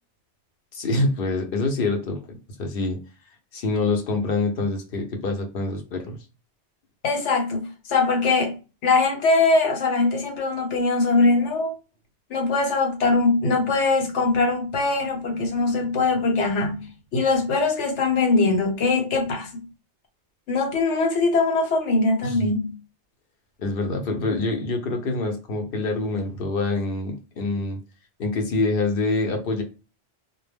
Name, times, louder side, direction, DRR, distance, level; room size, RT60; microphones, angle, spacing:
voice 1, 0.7-3.0 3.5-6.2 22.2-22.4 23.6-27.8 28.2-29.6, left 2 dB, 60° left, 0.8 m, -26 dB
voice 2, 7.0-8.5 8.8-11.7 12.3-16.9 17.1-19.6 20.5-22.7, left 3 dB, 75° left, 1.1 m, -22 dB
2.1 x 2.1 x 3.2 m
omnidirectional pair, 1.2 m